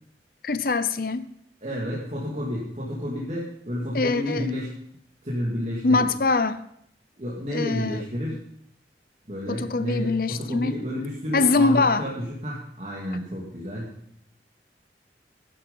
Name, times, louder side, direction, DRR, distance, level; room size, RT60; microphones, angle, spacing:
voice 1, 0.4-1.3 3.9-4.5 5.8-6.6 7.5-8.0 9.5-10.8 11.3-12.1, left 3 dB, 55° left, 13 dB, 0.7 m, -23 dB
voice 2, 1.6-4.7 5.2-6.1 7.2-8.4 9.3-13.9, equal, 40° right, -5 dB, 2.5 m, -30 dB
13.5 x 11.0 x 5.5 m, 0.69 s
head